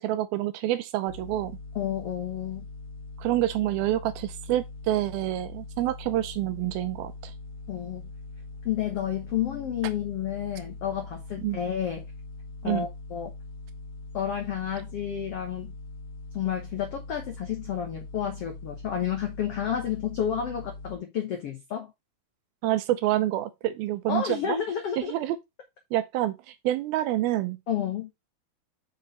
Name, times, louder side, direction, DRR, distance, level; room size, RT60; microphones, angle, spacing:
voice 1, 0.0-1.5 3.2-7.3 11.4-11.6 12.6-12.9 22.6-24.6 25.0-25.4 25.9-27.6, right 14 dB, 80° right, 2.4 m, -27 dB
sound 1, 1.1-21.0, left 3 dB, 60° left, 1.6 m, -42 dB
voice 2, 1.7-2.7 7.7-8.1 8.6-12.0 12.6-13.3 14.1-15.7 16.3-21.9 24.1-25.1 27.7-28.1, left 9 dB, 80° left, 1.3 m, -30 dB
6.2 x 5.7 x 4.1 m
omnidirectional pair, 4.6 m